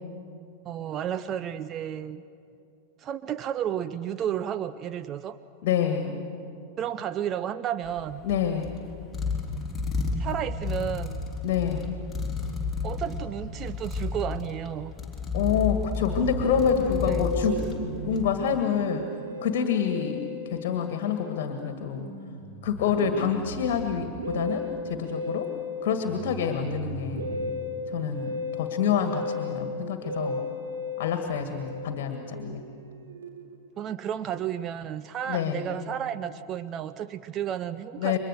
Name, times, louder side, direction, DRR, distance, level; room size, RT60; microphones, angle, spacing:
voice 1, 0.6-2.2 3.0-5.4 6.8-8.3 10.2-11.2 12.8-14.9 17.1-17.3 33.8-38.2, right 9 dB, 30° right, 11 dB, 0.6 m, -32 dB
voice 2, 5.6-6.2 8.2-8.8 11.4-12.0 15.3-17.6 18.1-19.1 19.4-22.1 22.6-25.5 25.8-27.2 27.9-30.4 31.0-32.6 35.3-35.7 38.0-38.2, left 7 dB, 50° left, 6 dB, 2.0 m, -27 dB
sound 1, 7.8-18.4, left 4 dB, 10° left, 3.9 m, -32 dB
Musical instrument, 16.1-33.7, left 2 dB, 70° right, 3.3 m, -34 dB
29.5 x 24.0 x 6.8 m, 2.5 s
figure-of-eight pair, 90°, 0 cm